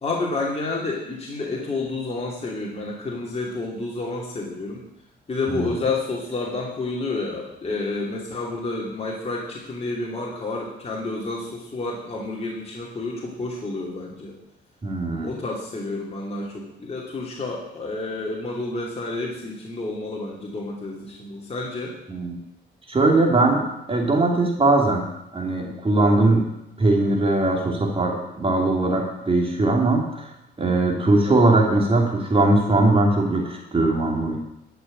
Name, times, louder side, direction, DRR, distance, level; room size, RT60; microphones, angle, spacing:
voice 1, 0.0-4.8 5.3-14.4 15.2-21.9 31.2-31.5, left 3 dB, 30° left, -2 dB, 2.8 m, -30 dB
voice 2, 14.8-15.3 22.1-22.4 22.9-23.6 23.9-25.1 25.3-26.4 26.8-34.4, right 2 dB, 30° right, 0 dB, 2.8 m, -20 dB
12.5 x 6.1 x 8.8 m, 0.86 s
cardioid pair, 90°, 20 cm